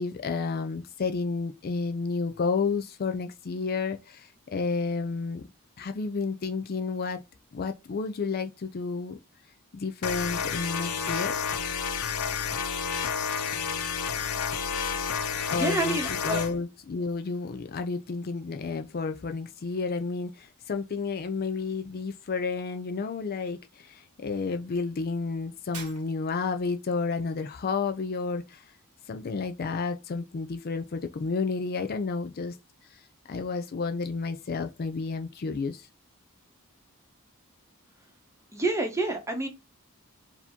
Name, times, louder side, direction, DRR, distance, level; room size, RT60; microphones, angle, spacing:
voice 1, 0.0-5.4 5.8-7.2 7.5-9.2 9.7-11.4 15.5-16.0 16.2-28.6 29.1-32.5 33.3-35.9, left 4 dB, 45° left, 0.4 m, -31 dB
sound 1, 10.0-16.5, left 6 dB, 85° left, 0.6 m, -30 dB
voice 2, 15.5-16.4 38.5-39.5, right 2 dB, 15° right, 0.9 m, -28 dB
Shatter, 25.7-26.5, right 5 dB, 90° right, 1.0 m, -44 dB
4.7 x 2.8 x 3.6 m
head